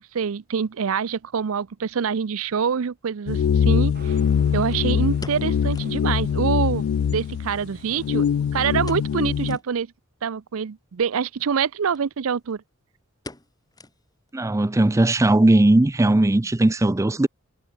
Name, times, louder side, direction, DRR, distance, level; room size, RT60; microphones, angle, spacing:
voice 1, 0.1-4.1 4.5-8.3 8.5-9.9 10.2-12.6, right 6 dB, 75° right, 0.5 m, -25 dB
sound 1, 2.6-2.7 4.7-6.1 6.4-6.5 6.8-6.9 7.5-8.4 8.8-9.2 9.4-9.7 10.2-10.3 11.3-11.5 11.9-12.1 12.3-12.7 13.2-14.3 14.6-14.7 15.3-15.6 15.9-16.0, left 2 dB, 20° left, 5.5 m, -44 dB
sound 2, 3.3-9.6, left 8 dB, 75° left, 0.3 m, -23 dB
Motorcycle, 3.9-8.9, right 3 dB, 50° right, 5.0 m, -50 dB
voice 2, 14.3-17.3, right 1 dB, 15° right, 0.4 m, -18 dB
head